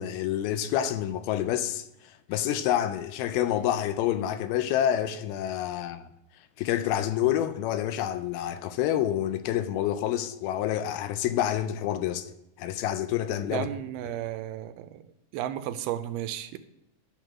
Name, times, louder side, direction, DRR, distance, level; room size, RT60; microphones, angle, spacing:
voice 1, 0.0-6.1 6.6-12.3 12.6-13.7, left 11 dB, 80° left, 2.4 m, -28 dB
voice 2, 13.5-15.0 15.3-16.6, right 12 dB, 85° right, 2.5 m, -33 dB
12.0 x 4.6 x 6.0 m
omnidirectional pair, 4.4 m